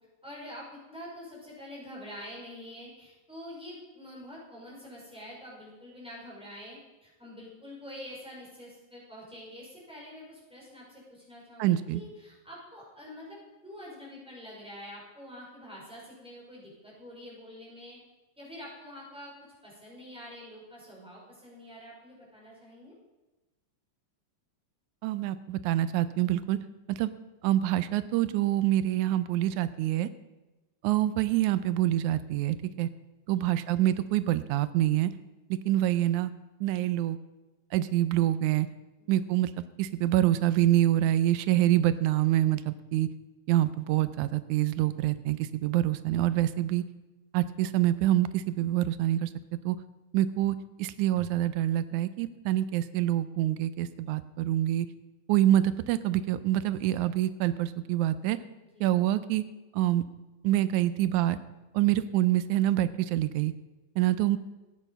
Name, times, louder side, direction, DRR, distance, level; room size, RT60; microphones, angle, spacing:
voice 1, 0.2-18.0 18.4-19.3 19.6-22.9 33.3-33.5 58.7-58.9 64.2-64.4, equal, ahead, -6 dB, 4.8 m, -46 dB
voice 2, 11.6-12.0 25.0-26.6 26.9-27.1 27.4-30.1 30.8-32.9 33.3-35.1 35.7-36.3 36.6-37.2 37.7-38.7 39.1-39.5 39.8-43.1 43.5-46.8 47.3-49.3 49.7-49.8 50.1-54.9 55.3-58.4 58.8-59.4 59.7-60.0 60.4-61.4 61.7-63.5 64.0-64.4, right 13 dB, 85° right, 14 dB, 1.9 m, -26 dB
14.5 x 9.1 x 5.4 m, 1.1 s
omnidirectional pair, 3.4 m